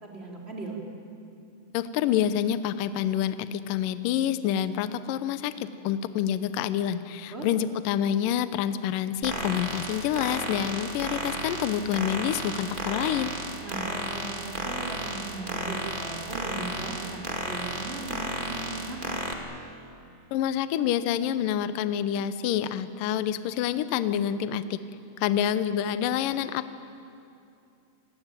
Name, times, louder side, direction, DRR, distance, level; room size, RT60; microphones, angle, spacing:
voice 1, 0.0-0.8 7.3-7.5 13.6-19.2, right 2 dB, 15° right, -1 dB, 3.4 m, -38 dB
voice 2, 1.7-13.3 20.3-24.8 25.2-26.7, left 10 dB, 90° left, 13 dB, 1.9 m, -27 dB
sound 1, 9.2-19.3, right 2 dB, 55° right, 0.5 m, -33 dB
27.5 x 21.0 x 9.1 m, 2.6 s
omnidirectional pair, 5.2 m